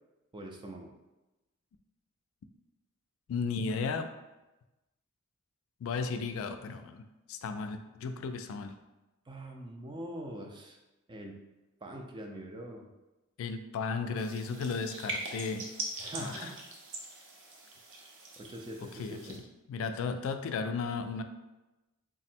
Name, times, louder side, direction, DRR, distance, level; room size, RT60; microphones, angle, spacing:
voice 1, 0.3-0.9 9.3-10.8 11.1-11.4 11.8-12.9 16.0-16.6 18.4-19.4, right 1 dB, 20° right, 2 dB, 0.4 m, -43 dB
voice 2, 3.3-4.1 5.8-8.7 13.4-15.6 16.2-16.5 18.9-21.2, left 4 dB, 70° left, 8 dB, 0.3 m, -35 dB
sound 1, 14.2-19.4, right 2 dB, 65° right, 0.7 m, -42 dB
3.6 x 2.1 x 4.2 m, 1.0 s
head